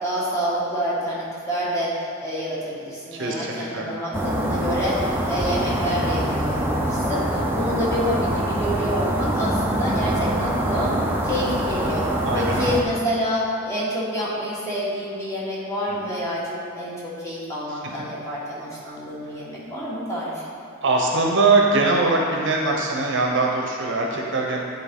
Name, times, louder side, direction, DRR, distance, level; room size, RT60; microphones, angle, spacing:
voice 1, 0.0-11.0 11.2-12.1 12.3-20.5, equal, 15° left, -7 dB, 1.3 m, -28 dB
voice 2, 3.1-3.9 12.2-12.8 15.9-16.1 17.7-17.8 20.8-24.6, right 3 dB, 55° right, 0 dB, 0.7 m, -22 dB
sound 1, 4.1-12.8, right 1 dB, 10° right, 0.4 m, -24 dB
9.6 x 3.9 x 3.6 m, 2.3 s
head